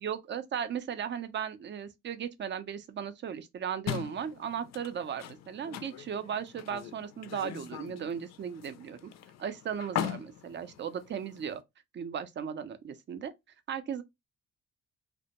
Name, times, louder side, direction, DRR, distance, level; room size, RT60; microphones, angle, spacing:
voice 1, 0.0-9.1 9.4-11.6 11.9-13.3 13.7-14.0, right 8 dB, 40° right, 0.4 m, -36 dB
sound 1, 3.9-11.6, left 10 dB, 60° left, 0.4 m, -40 dB
2.1 x 2.1 x 2.8 m
cardioid pair, 90°, 30 cm